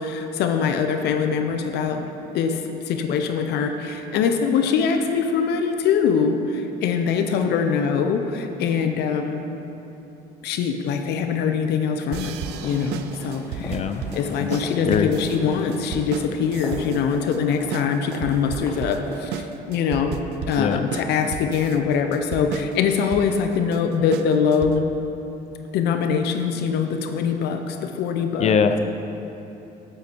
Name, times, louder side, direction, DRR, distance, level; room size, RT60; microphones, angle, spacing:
voice 1, 0.0-2.1 2.3-9.5 10.4-12.4 12.6-13.8 14.1-20.2 20.5-24.9 25.7-28.6, left 6 dB, 80° left, 6 dB, 0.7 m, -23 dB
sound 1, 12.1-25.0, right 9 dB, 85° right, 0.4 m, -34 dB
sound 2, 12.3-19.2, left 1 dB, 15° left, 1.7 m, -40 dB
voice 2, 13.7-14.0 14.4-14.5 14.8-15.1 20.6-20.8 28.4-28.8, left 6 dB, 40° left, 9 dB, 0.6 m, -21 dB
8.2 x 8.0 x 4.5 m, 3.0 s
cardioid pair, 110°, 17 cm